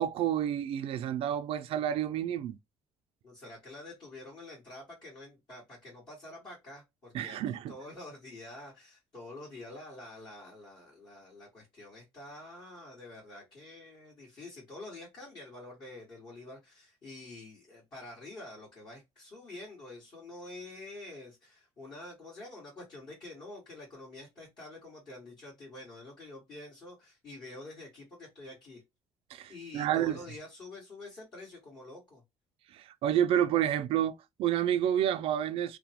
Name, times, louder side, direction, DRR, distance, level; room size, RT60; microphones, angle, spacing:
voice 1, 0.0-2.6 7.1-7.7 29.3-30.2 32.7-35.8, right 10 dB, 60° right, 0.4 m, -29 dB
voice 2, 3.2-28.8 29.5-32.2, left 2 dB, 40° left, 1.7 m, -47 dB
2.9 x 2.2 x 2.8 m
cardioid pair, 140°, 11 cm